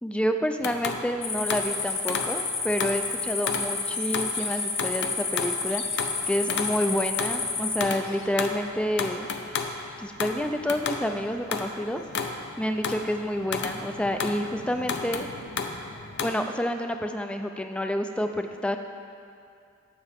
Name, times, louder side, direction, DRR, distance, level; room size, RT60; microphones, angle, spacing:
voice 1, 0.0-5.8 6.3-9.3 10.0-12.0 12.6-15.3 16.2-18.8, equal, 5° left, 6 dB, 0.3 m, -29 dB
sound 1, 0.6-3.1 3.5-16.3, left 5 dB, 55° left, 0.6 m, -33 dB
sound 2, 1.2-7.8, left 4 dB, 30° left, 0.9 m, -30 dB
14.5 x 5.6 x 3.5 m, 2.4 s
head